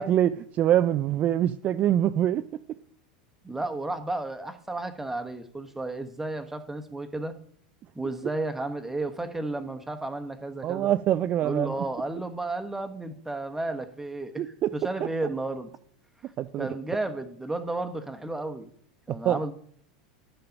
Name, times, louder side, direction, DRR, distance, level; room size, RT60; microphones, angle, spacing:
voice 1, 0.0-2.4 10.6-11.7 14.4-14.7 16.4-16.7 19.3-19.4, right 11 dB, 35° right, 0.4 m, -24 dB
voice 2, 3.4-7.3 7.9-10.9 11.4-15.7 16.2-16.3 16.6-18.7 19.1-19.5, right 2 dB, 10° right, 1.1 m, -33 dB
11.5 x 5.6 x 5.2 m
figure-of-eight pair, 85°, 4 cm